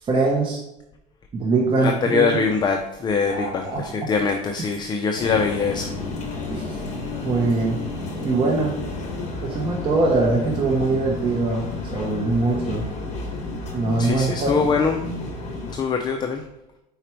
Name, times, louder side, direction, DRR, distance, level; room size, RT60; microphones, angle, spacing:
voice 1, 0.0-0.6 1.3-2.2 3.3-4.1 6.5-6.6 7.2-7.8 8.2-8.8 9.4-12.9 13.7-14.5, right 3 dB, 30° right, -2 dB, 1.1 m, -22 dB
voice 2, 1.8-5.9 14.0-15.0 15.7-16.4, left 5 dB, 25° left, 4 dB, 0.5 m, -23 dB
sound 1, 5.2-15.8, left 2 dB, 40° left, 1.7 m, -31 dB
5.0 x 4.8 x 4.5 m, 0.87 s
cardioid pair, 130°, 17 cm